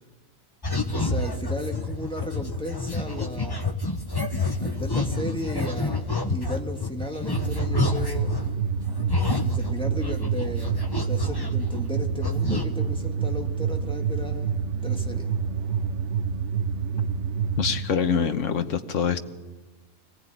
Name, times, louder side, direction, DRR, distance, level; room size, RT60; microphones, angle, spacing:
sound 1, 0.6-8.5 8.9-12.0 12.2-12.6, left 2 dB, 20° left, 1.1 m, -29 dB
voice 1, 0.9-3.8 4.6-8.4 9.4-15.3, equal, 5° left, 2 dB, 1.9 m, -35 dB
sound 2, 7.3-17.8, right 6 dB, 65° right, 1.2 m, -27 dB
voice 2, 17.6-19.3, left 7 dB, 70° left, 9 dB, 1.4 m, -25 dB
22.5 x 17.5 x 9.2 m, 1.2 s
omnidirectional pair, 1.3 m